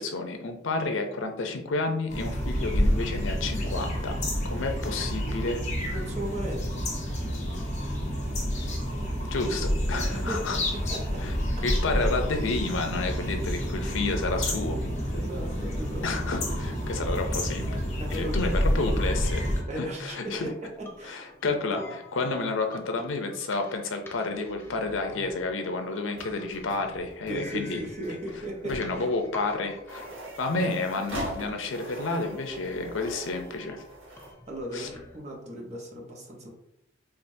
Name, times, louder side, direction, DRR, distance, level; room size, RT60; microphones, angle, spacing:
voice 1, 0.0-4.2 4.4-5.6 9.3-10.6 11.2-11.3 11.6-14.8 16.0-17.7 18.1-19.5 19.8-20.5 21.0-27.8 28.6-30.0 30.4-33.8 34.7-34.9, left 3 dB, 85° left, 5 dB, 0.6 m, -30 dB
sound 1, 2.1-19.6, equal, 40° left, 0.9 m, -29 dB
voice 2, 5.9-6.9 10.1-10.4 10.9-11.2 15.1-16.1 18.0-18.6 19.7-20.3 21.0-22.0 27.3-29.1 34.1-36.5, right 1 dB, 35° right, -1 dB, 0.9 m, -37 dB
sound 2, 19.0-35.2, left 2 dB, 10° left, 0.5 m, -48 dB
sound 3, 26.1-34.3, right 1 dB, 85° right, 1.3 m, -42 dB
4.7 x 2.5 x 2.7 m, 0.80 s
head